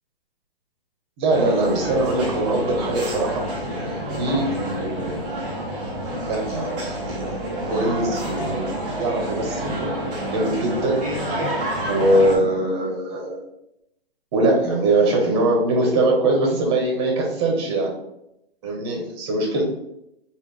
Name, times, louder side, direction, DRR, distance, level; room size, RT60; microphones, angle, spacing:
voice 1, 1.2-5.3 6.2-7.3 7.6-11.0 11.9-13.4 14.3-17.9 18.6-19.6, right 2 dB, 25° right, 1 dB, 0.8 m, -22 dB
sound 1, 1.3-12.4, right 1 dB, 10° right, 0.4 m, -28 dB
3.5 x 2.5 x 3.4 m, 0.82 s
hypercardioid pair, 160°, 30 cm